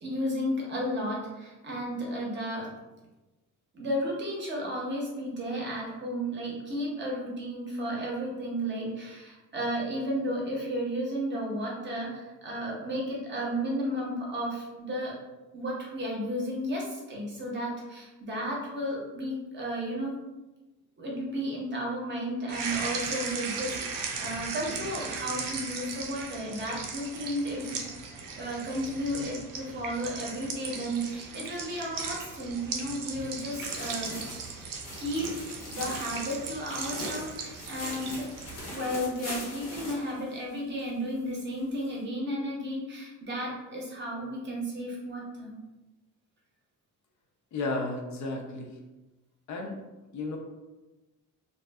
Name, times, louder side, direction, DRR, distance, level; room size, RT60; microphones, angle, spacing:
voice 1, 0.0-2.7 3.7-15.2 15.5-20.1 21.0-27.8 28.4-34.2 35.0-38.3 38.6-45.5, equal, 35° right, -3 dB, 0.6 m, -33 dB
sound 1, 22.5-38.6, right 5 dB, 75° right, 0.5 m, -37 dB
sound 2, 33.2-40.9 41.2-41.3 41.8-41.9, left 1 dB, 75° left, 0.9 m, -41 dB
voice 2, 47.5-48.8 49.5-49.8 50.1-50.4, left 2 dB, 60° left, 1 dB, 0.5 m, -33 dB
2.5 x 2.3 x 2.2 m, 1.1 s
cardioid pair, 155°, 33 cm